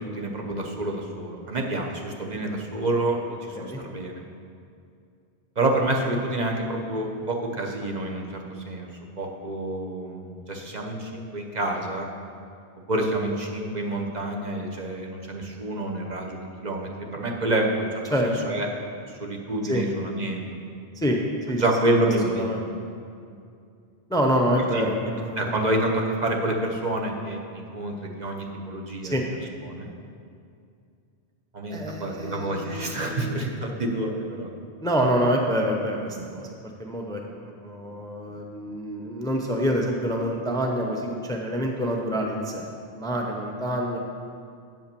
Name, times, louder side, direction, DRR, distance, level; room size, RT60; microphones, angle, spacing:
voice 1, 0.0-4.2 5.6-8.2 8.7-8.9 9.2-12.1 12.9-17.9 18.2-18.7 19.2-20.5 21.6-22.5 23.3-23.4 24.7-29.1 29.7-29.9 31.5-34.5, right 1 dB, 45° right, 0 dB, 1.0 m, -28 dB
voice 2, 21.5-22.6 24.1-25.5 29.1-29.2 31.7-33.3 34.8-36.5 36.8-42.7 42.9-44.0, equal, 5° left, 1 dB, 0.6 m, -27 dB
9.0 x 5.4 x 6.9 m, 2.4 s
omnidirectional pair, 1.0 m